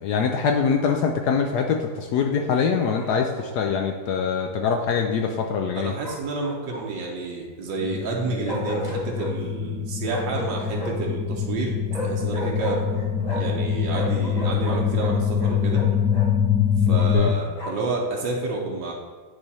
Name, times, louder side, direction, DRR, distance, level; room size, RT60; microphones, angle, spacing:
voice 1, 0.0-5.9 17.1-17.3, left 6 dB, 75° left, 3 dB, 1.1 m, -23 dB
Bark, 2.9-3.6 6.0-7.1 8.5-9.4 10.0-11.1 11.9-13.6 13.9-16.3 17.0-17.9, equal, 30° left, 0.9 m, -34 dB
voice 2, 5.7-11.7 12.0-12.8 13.3-15.8 16.8-18.9, right 3 dB, 85° right, -2 dB, 1.6 m, -29 dB
sound 1, 7.8-17.1, left 8 dB, 5° right, 0.5 m, -24 dB
9.6 x 3.3 x 4.1 m, 1.4 s
omnidirectional pair, 1.9 m